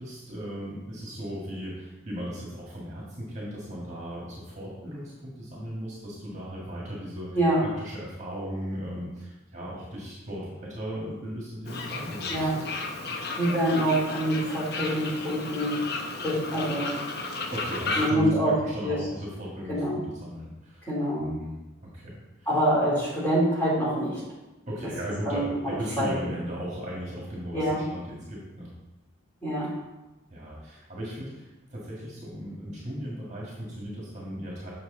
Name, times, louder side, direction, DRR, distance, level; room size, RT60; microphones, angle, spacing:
voice 1, 0.0-12.6 17.5-20.9 21.2-22.5 24.6-28.7 30.3-34.7, equal, 35° right, -5 dB, 1.8 m, -37 dB
Fowl, 11.7-18.1, left 3 dB, 50° left, 0.8 m, -33 dB
voice 2, 13.3-17.0 18.0-18.5 18.8-19.0 19.7-20.0 20.9-21.3 22.5-24.2 25.2-26.2 27.5-27.8 29.4-29.7, right 1 dB, 10° left, -8 dB, 2.9 m, -26 dB
7.7 x 6.2 x 3.8 m, 1.0 s
head